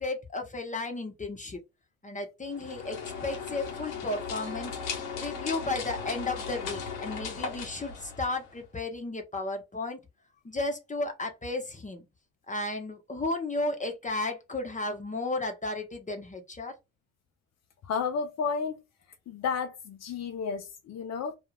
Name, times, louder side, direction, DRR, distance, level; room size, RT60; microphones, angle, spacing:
voice 1, 0.0-1.6 2.0-4.7 5.1-10.0 10.4-12.0 12.5-16.8, left 2 dB, 25° left, 0.8 m, -34 dB
sound 1, 2.5-8.7, left 6 dB, 80° left, 0.9 m, -37 dB
voice 2, 17.8-18.8 19.3-21.3, left 5 dB, 55° left, 0.5 m, -32 dB
2.4 x 2.3 x 3.1 m
hypercardioid pair, 50°, 31 cm